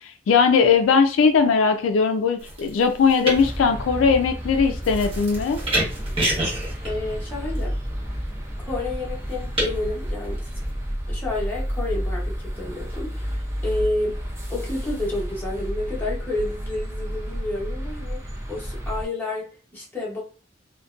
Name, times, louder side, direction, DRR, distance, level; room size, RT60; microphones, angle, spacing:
voice 1, 0.3-5.6, left 5 dB, 80° left, 7 dB, 0.3 m, -19 dB
sound 1, 2.4-10.7, right 1 dB, 30° right, 0.9 m, -30 dB
sound 2, 3.3-19.1, equal, 15° right, 0.4 m, -31 dB
voice 2, 6.8-7.7 8.7-10.4 11.1-14.2 14.5-20.2, left 2 dB, 10° left, -5 dB, 0.8 m, -30 dB
2.5 x 2.1 x 2.3 m, 0.37 s
head